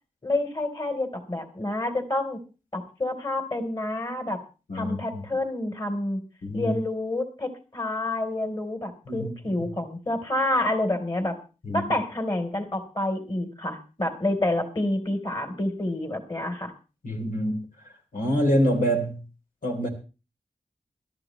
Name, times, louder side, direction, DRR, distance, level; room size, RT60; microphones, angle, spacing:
voice 1, 0.2-2.4 2.7-4.4 4.7-6.2 6.5-11.4 11.7-16.7, left 1 dB, 35° left, 3.5 m, -28 dB
voice 2, 4.7-5.2 6.4-6.7 9.1-9.3 9.6-9.7 11.6-11.8 17.0-17.6 18.1-19.2 19.6-19.9, equal, 85° left, 3.5 m, -25 dB
21.5 x 13.0 x 3.1 m
wide cardioid pair, 60°, 14 cm